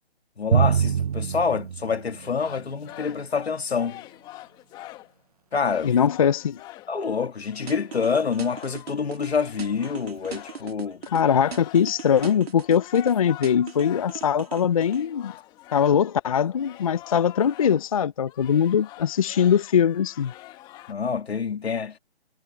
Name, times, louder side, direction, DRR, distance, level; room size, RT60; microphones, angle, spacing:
voice 1, 0.4-4.0 5.5-5.9 6.9-11.0 20.9-22.0, left 5 dB, 80° left, 2.3 m, -27 dB
Drum, 0.5-2.9, right 8 dB, 35° right, 0.6 m, -25 dB
sound 1, 2.2-5.2 5.5-18.0 18.3-20.9, left 16 dB, 15° left, 1.4 m, -45 dB
voice 2, 5.8-6.6 11.1-15.3 15.7-20.3, left 8 dB, 35° left, 0.5 m, -21 dB
sound 2, 7.7-9.3 9.6-11.2 11.5-13.1 13.4-15.0, right 7 dB, 70° right, 1.8 m, -38 dB
hypercardioid pair, 155°, 31 cm